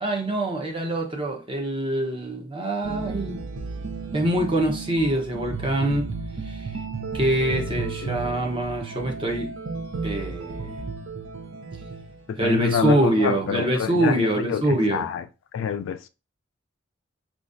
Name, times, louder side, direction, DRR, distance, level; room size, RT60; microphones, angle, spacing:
voice 1, 0.0-3.4 4.1-6.1 6.4-6.7 7.1-9.5 10.0-10.7 12.4-15.1, right 1 dB, 25° right, 0.8 m, -24 dB
sound 1, 2.8-12.4, right 4 dB, 70° right, 0.6 m, -33 dB
voice 2, 12.3-15.3 15.5-16.1, left 7 dB, 75° left, 0.3 m, -27 dB
4.9 x 2.4 x 2.5 m
head